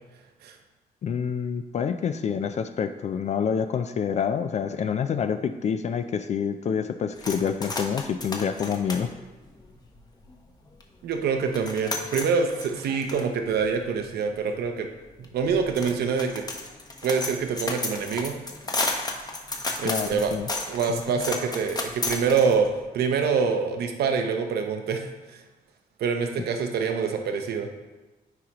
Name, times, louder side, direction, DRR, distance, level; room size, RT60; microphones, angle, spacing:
voice 1, 1.0-9.1 19.8-20.5 20.9-21.0, left 7 dB, 45° left, 9 dB, 0.4 m, -27 dB
sound 1, 7.2-10.3 10.8-10.9 11.1-22.8, left 3 dB, 25° left, 0.9 m, -33 dB
voice 2, 11.0-14.9 15.2-16.4 17.0-18.3 19.8-20.3 20.7-25.4 26.0-27.7, right 5 dB, 85° right, 5 dB, 0.7 m, -26 dB
9.5 x 4.9 x 3.0 m, 1.1 s
cardioid pair, 120°, 16 cm